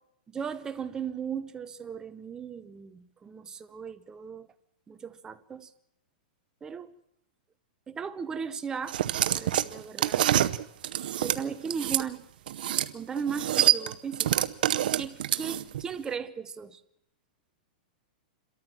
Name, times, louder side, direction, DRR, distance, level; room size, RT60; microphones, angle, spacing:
voice 1, 0.3-4.5 4.9-5.7 6.6-6.9 7.9-9.0 9.3-10.2 11.2-12.2 12.9-14.4 15.0-16.8, right 6 dB, 15° right, 0.8 m, -37 dB
sound 1, 8.9-12.0 12.5-12.9 13.2-15.8, right 12 dB, 70° right, 0.8 m, -26 dB
27.5 x 13.5 x 7.5 m
supercardioid pair, 155°, 5 cm